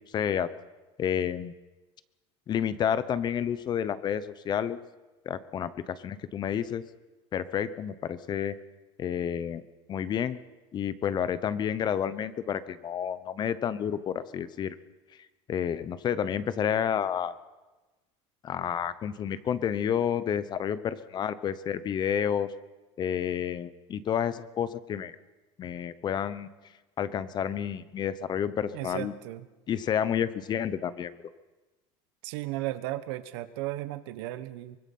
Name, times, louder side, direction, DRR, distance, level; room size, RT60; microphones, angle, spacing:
voice 1, 0.1-0.5 1.0-1.5 2.5-4.8 5.3-6.8 7.3-8.5 9.0-9.6 9.9-10.4 10.7-14.8 15.5-17.3 18.4-22.5 23.0-25.2 25.6-26.5 27.0-29.1 29.7-31.1, left 8 dB, 30° left, 15 dB, 0.9 m, -30 dB
voice 2, 28.7-29.4 32.2-34.8, right 16 dB, 75° right, 12 dB, 1.3 m, -35 dB
24.0 x 20.5 x 5.5 m, 1.2 s
supercardioid pair, 135°, 14 cm